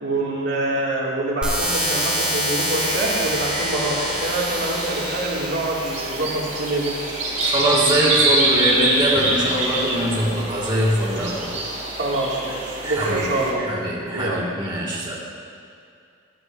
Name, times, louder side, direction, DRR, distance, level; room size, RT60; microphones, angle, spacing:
voice 1, 0.0-6.9 12.0-13.7 14.1-14.4, right 1 dB, 65° right, -4 dB, 2.3 m, -25 dB
sound 1, 1.4-7.4, equal, 5° right, 3.0 m, -27 dB
sound 2, 2.8-13.5, right 2 dB, 40° right, 2.4 m, -25 dB
voice 2, 7.4-11.5 12.8-13.3 13.6-15.2, right 1 dB, 25° right, -6 dB, 1.9 m, -22 dB
17.5 x 11.5 x 2.6 m, 2.5 s
head